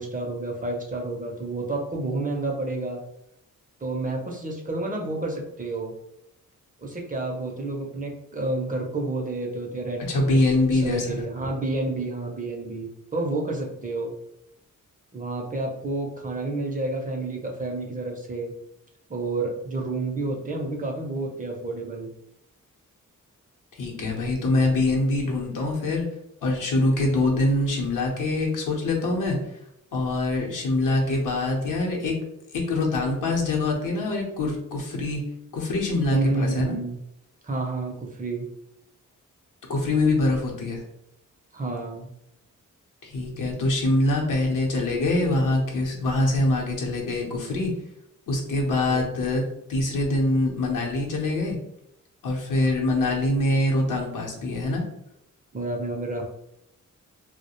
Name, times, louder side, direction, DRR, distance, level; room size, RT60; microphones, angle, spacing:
voice 1, 0.0-3.0 3.8-6.0 6.8-14.1 15.1-18.5 19.1-22.1 36.1-37.0 37.4-38.5 41.5-42.1 48.9-49.1 55.5-56.2, right 2 dB, 25° right, 0 dB, 0.4 m, -30 dB
voice 2, 10.1-11.2 23.7-26.1 26.4-29.4 29.9-32.2 32.5-35.2 35.5-36.8 39.7-40.8 43.0-47.7 48.3-49.4 49.7-51.6 52.2-54.8, left 2 dB, 75° left, -1 dB, 0.7 m, -24 dB
2.3 x 2.0 x 2.8 m, 0.78 s
wide cardioid pair, 105°, 32 cm